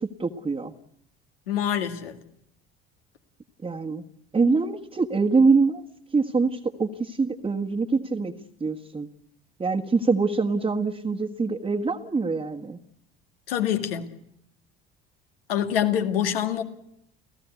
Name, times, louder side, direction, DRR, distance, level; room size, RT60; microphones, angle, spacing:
voice 1, 0.2-0.7 3.6-4.0 4.3-5.8 6.1-8.3 8.6-9.1 9.6-12.8, right 4 dB, 20° right, 1.7 m, -24 dB
voice 2, 1.5-2.2 13.5-14.1 15.5-16.6, left 10 dB, 70° left, 2.1 m, -25 dB
30.0 x 15.5 x 8.4 m
figure-of-eight pair, 60°, 30 cm